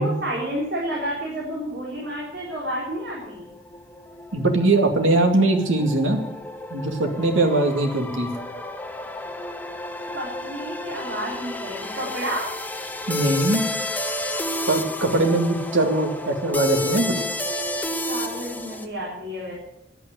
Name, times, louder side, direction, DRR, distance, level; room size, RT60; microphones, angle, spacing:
voice 1, 0.0-3.5 10.1-12.5 18.1-19.6, right 1 dB, 60° right, -6 dB, 4.1 m, -30 dB
sound 1, 2.7-18.9, left 1 dB, 10° left, 0.9 m, -31 dB
voice 2, 4.3-6.2 6.7-8.3 13.1-13.6 14.7-17.1, right 2 dB, 85° right, 3 dB, 2.3 m, -21 dB
10.5 x 8.7 x 9.1 m, 0.83 s
head